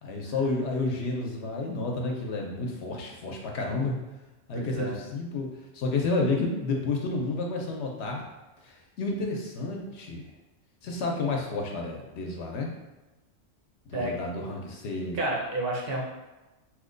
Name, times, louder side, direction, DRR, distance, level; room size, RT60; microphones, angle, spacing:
voice 1, 0.0-4.0 4.5-5.5 5.7-8.2 8.6-10.3 10.8-12.7 13.9-15.2, left 3 dB, 85° left, 1 dB, 0.9 m, -30 dB
voice 2, 4.5-5.0 13.9-14.1 15.1-16.0, right 2 dB, 60° right, -2 dB, 0.9 m, -30 dB
2.9 x 2.1 x 3.7 m, 1.1 s
omnidirectional pair, 1.1 m